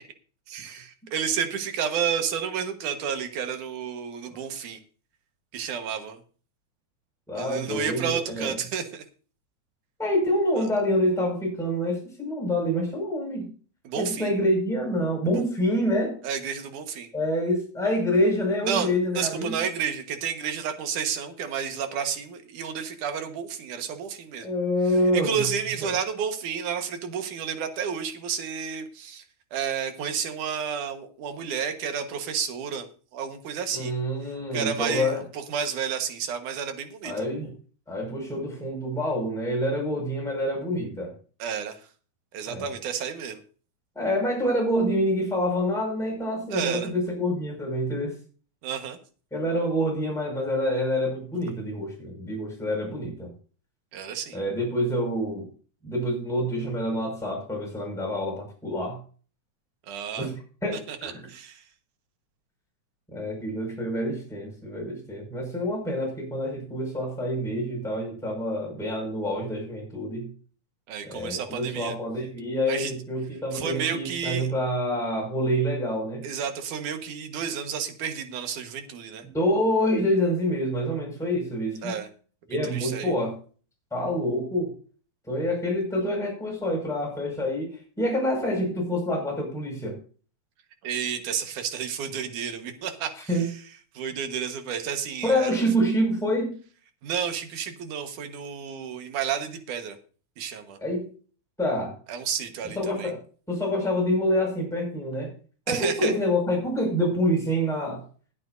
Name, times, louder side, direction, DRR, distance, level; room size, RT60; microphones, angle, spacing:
voice 1, 0.5-4.8 5.5-6.2 7.3-9.0 10.6-10.7 13.8-14.3 15.3-15.5 16.2-17.1 18.6-24.5 25.1-29.2 29.5-32.9 33.1-33.9 34.5-37.3 41.4-41.8 42.3-43.4 46.5-46.9 48.6-49.0 53.9-54.4 59.9-60.3 60.7-61.6 70.9-71.9 72.7-72.9 73.5-74.5 76.2-79.2 81.8-82.1 82.5-83.1 90.8-93.5 93.9-95.6 97.0-100.0 100.4-100.8 102.1-103.1 105.7-106.1, right 7 dB, 80° right, 6 dB, 2.9 m, -31 dB
voice 2, 7.3-8.6 10.0-13.5 14.0-16.1 17.1-19.5 24.4-25.4 25.8-25.9 33.7-35.2 37.0-37.5 37.9-41.1 42.5-42.7 44.0-48.1 49.3-53.3 54.3-55.5 55.8-59.0 60.2-60.3 60.6-61.2 63.1-70.3 71.0-76.2 79.3-82.0 82.5-83.3 83.9-84.7 85.3-90.0 93.3-93.5 95.2-96.5 100.8-101.1 101.6-101.9 102.8-103.2 103.5-105.3 105.7-108.0, equal, ahead, -1 dB, 5.5 m, -27 dB
20.5 x 8.8 x 2.7 m, 0.40 s
omnidirectional pair, 3.5 m